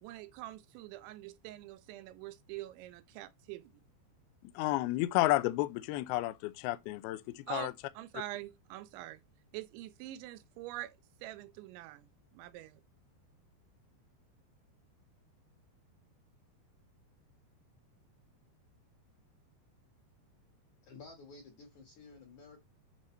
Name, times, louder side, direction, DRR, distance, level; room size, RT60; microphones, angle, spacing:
voice 1, 0.0-3.8 7.5-9.2 9.5-12.8, right 16 dB, 85° right, 3.0 m, -45 dB
voice 2, 4.6-7.7, left 16 dB, 85° left, 2.2 m, -31 dB
voice 3, 20.8-22.6, left 4 dB, 60° left, 2.1 m, -53 dB
9.4 x 5.7 x 3.1 m
omnidirectional pair, 5.3 m